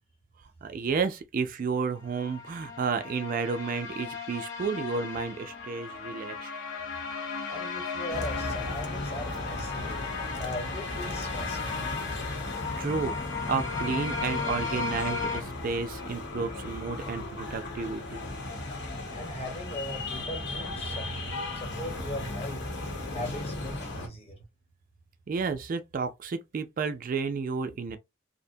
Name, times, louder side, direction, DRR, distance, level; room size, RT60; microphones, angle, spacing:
voice 1, 0.6-6.5 12.8-18.2 25.3-28.0, right 5 dB, 45° right, 0.3 m, -32 dB
sound 1, 2.0-15.4, left 5 dB, 80° left, 0.9 m, -36 dB
voice 2, 7.4-9.9 10.3-11.6 19.1-21.1 21.5-22.7 23.1-24.4, left 1 dB, 30° left, 1.0 m, -39 dB
sound 2, 8.1-24.1, left 2 dB, 60° left, 0.9 m, -36 dB
2.6 x 2.1 x 2.6 m
head